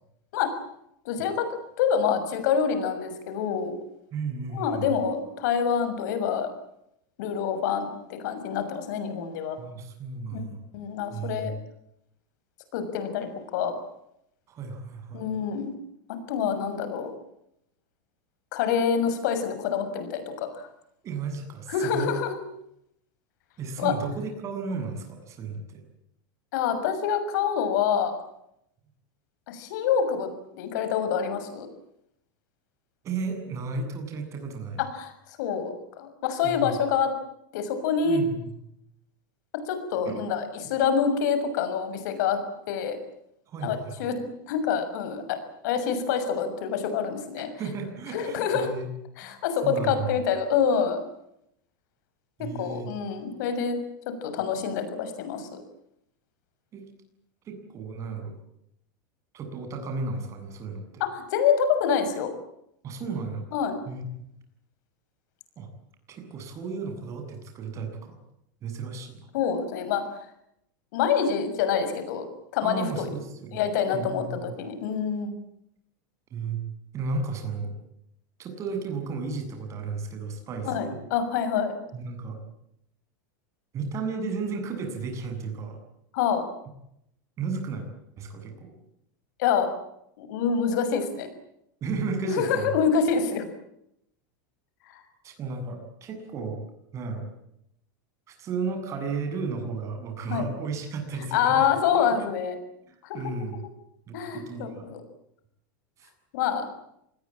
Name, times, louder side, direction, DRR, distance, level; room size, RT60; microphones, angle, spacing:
voice 1, 1.0-1.5 1.8-3.7 4.5-6.5 7.2-9.6 10.3-10.4 10.7-11.5 12.7-13.7 15.1-15.7 16.3-17.1 18.5-20.6 21.7-22.4 23.8-23.9 26.5-28.1 29.5-30.3 30.5-31.7 34.8-35.1 35.4-37.1 37.5-38.2 39.7-42.4 42.7-43.0 43.6-44.2 44.5-45.4 45.6-47.5 48.1-48.7 49.2-51.0 52.4-53.8 54.2-55.5 61.0-62.3 63.5-63.8 69.3-70.0 70.9-72.2 72.5-73.1 73.5-75.3 80.7-81.8 86.1-86.5 89.4-89.7 90.2-91.3 92.3-93.5 94.8-94.9 100.3-100.4 101.3-102.6 103.0-103.2 104.1-105.0 106.3-106.7, left 7 dB, 65° left, 9 dB, 6.4 m, -26 dB
voice 2, 4.1-4.8 9.6-10.6 11.1-11.5 14.5-15.3 21.0-22.1 23.6-25.8 33.0-34.8 36.4-36.7 38.0-38.5 40.1-40.2 43.5-44.0 47.6-48.9 49.2-50.2 52.4-52.9 56.7-56.8 57.5-58.3 59.3-61.0 62.8-63.5 63.8-64.1 65.6-65.7 66.1-68.2 68.6-69.3 72.6-73.6 73.9-74.4 76.3-76.6 76.9-77.7 78.4-81.0 81.9-82.4 83.7-85.8 87.4-87.9 88.2-88.7 91.8-92.8 95.2-96.6 96.9-97.3 98.3-101.7 102.9-103.6 104.1-104.9 106.0-106.1, right 4 dB, 30° right, 5 dB, 7.7 m, -34 dB
27.0 x 20.5 x 8.8 m, 0.77 s
supercardioid pair, 150°, 10 cm